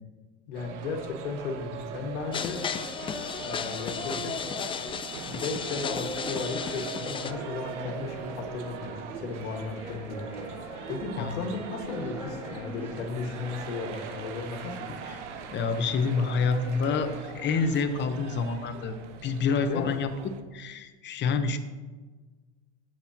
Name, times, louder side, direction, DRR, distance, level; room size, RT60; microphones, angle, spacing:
voice 1, 0.5-2.6 3.3-4.6 5.2-10.2 10.9-15.0 19.7-20.0, left 4 dB, 80° left, 4 dB, 1.8 m, -35 dB
sound 1, 0.5-20.4, right 7 dB, 85° right, 1.0 m, -41 dB
sound 2, 2.3-7.3, left 6 dB, 15° left, 0.4 m, -34 dB
sound 3, 5.1-17.2, right 1 dB, 5° right, 3.7 m, -43 dB
voice 2, 15.5-19.0 19.2-20.1 20.5-21.6, left 4 dB, 30° left, 8 dB, 1.0 m, -27 dB
17.0 x 7.8 x 2.9 m, 1.3 s
supercardioid pair, 115°, 35 cm